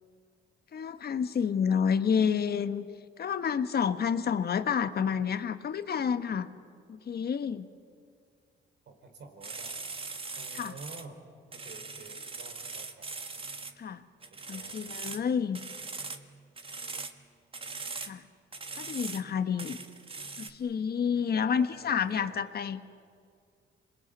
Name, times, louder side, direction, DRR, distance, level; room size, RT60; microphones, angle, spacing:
voice 1, 0.7-2.9 3.2-6.5 6.9-7.6 10.5-10.8 13.8-14.0 14.5-15.6 18.0-18.2 18.8-19.8 20.4-22.8, left 7 dB, 55° left, 10 dB, 1.4 m, -29 dB
voice 2, 8.9-9.9 10.4-11.2 11.5-13.1 13.3-13.5 14.3-15.1 21.3-22.7, right 3 dB, 65° right, 5 dB, 4.9 m, -50 dB
sound 1, 9.4-11.0 11.5-13.7 14.2-15.3 15.5-16.3 16.6-17.1 17.5-18.1 18.5-19.3 19.6-20.5, right 4 dB, 30° right, 1.7 m, -40 dB
27.0 x 21.5 x 9.5 m, 2.2 s
cardioid pair, 90°, 20 cm